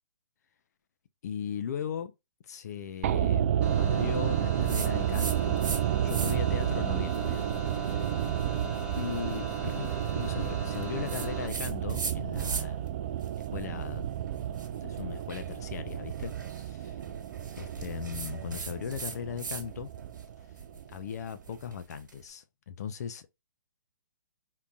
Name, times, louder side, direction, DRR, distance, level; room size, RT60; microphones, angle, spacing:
voice 1, 1.2-2.1 2.4-3.5 3.8-5.6 6.0-7.6 7.8-8.3 9.0-12.9 13.5-14.0 14.8-17.0 17.6-19.9 20.9-23.3, left 8 dB, 60° left, 0.5 m, -38 dB
sound 1, 3.0-21.2 21.5-21.6, right 11 dB, 45° right, 0.4 m, -31 dB
sound 2, 3.6-11.5, right 1 dB, 10° right, 1.1 m, -40 dB
sound 3, 4.7-5.8 6.1-6.6 7.1-12.9 13.2-19.7 20.0-22.2, right 4 dB, 85° right, 1.4 m, -41 dB
3.8 x 2.7 x 2.3 m
hypercardioid pair, 140°, 10 cm